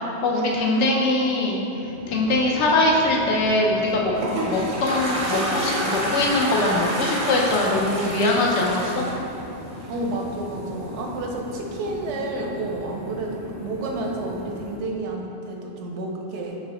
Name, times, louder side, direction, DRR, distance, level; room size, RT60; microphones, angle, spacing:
voice 1, 0.2-4.1 4.4-9.0, left 2 dB, 80° left, -2 dB, 1.0 m, -22 dB
Chatter / Fixed-wing aircraft airplane, 1.7-15.1, left 1 dB, 55° left, 0.5 m, -38 dB
Toilet flush, 3.8-10.2, right 1 dB, 40° right, 0.5 m, -28 dB
voice 2, 9.9-16.6, right 2 dB, 90° right, 1 dB, 0.9 m, -30 dB
5.4 x 3.0 x 2.9 m, 2.8 s
omnidirectional pair, 1.2 m